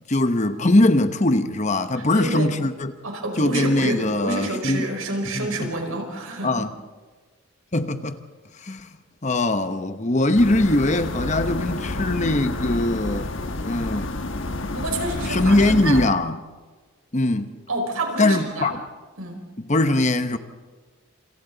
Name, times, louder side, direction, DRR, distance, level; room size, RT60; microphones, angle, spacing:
voice 1, 0.1-2.9 3.4-4.9 5.3-5.7 6.4-6.7 7.7-8.2 8.6-8.9 9.2-13.3 13.6-14.1 15.3-16.4 17.1-17.5 18.2-18.7 19.6-20.4, left 2 dB, 35° left, 1.0 m, -21 dB
voice 2, 2.0-2.6 3.0-6.6 14.7-16.0 17.7-18.7 19.2-19.4, right 2 dB, 85° right, 5.2 m, -29 dB
sound 1, 10.3-16.1, left 2 dB, 60° left, 1.3 m, -29 dB
28.0 x 27.5 x 4.0 m
head